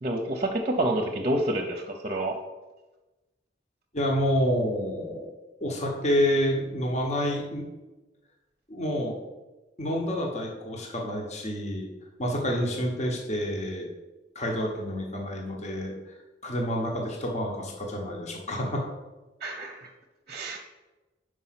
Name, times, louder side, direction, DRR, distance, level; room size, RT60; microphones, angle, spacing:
voice 1, 0.0-2.3 19.4-19.9 20.3-20.6, right 1 dB, 35° right, 3 dB, 0.7 m, -28 dB
voice 2, 3.9-5.3 5.6-7.6 8.7-9.2 9.8-11.9 12.2-13.9 14.3-16.1 16.4-18.8, equal, 40° left, 0 dB, 1.1 m, -28 dB
5.4 x 4.8 x 5.7 m, 1.1 s
head